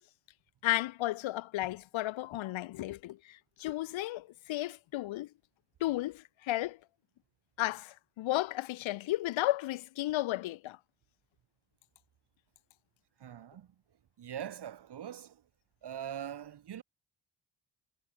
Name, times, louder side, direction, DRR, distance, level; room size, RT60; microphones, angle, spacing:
voice 1, 0.6-5.3 5.8-6.8 7.6-10.8, left 16 dB, 85° left, 0.8 m, -33 dB
voice 2, 13.2-13.7 14.2-15.4 15.8-16.8, right 9 dB, 60° right, 1.4 m, -42 dB
cardioid pair, 70°, 45 cm